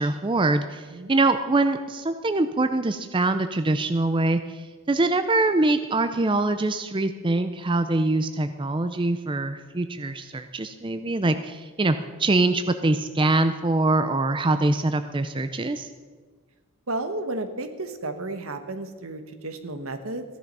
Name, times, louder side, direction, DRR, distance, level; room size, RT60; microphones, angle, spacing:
voice 1, 0.0-15.9, right 2 dB, 20° right, 9 dB, 0.5 m, -24 dB
voice 2, 16.9-20.2, right 2 dB, 75° right, 8 dB, 1.2 m, -32 dB
15.5 x 10.5 x 5.4 m, 1.4 s
head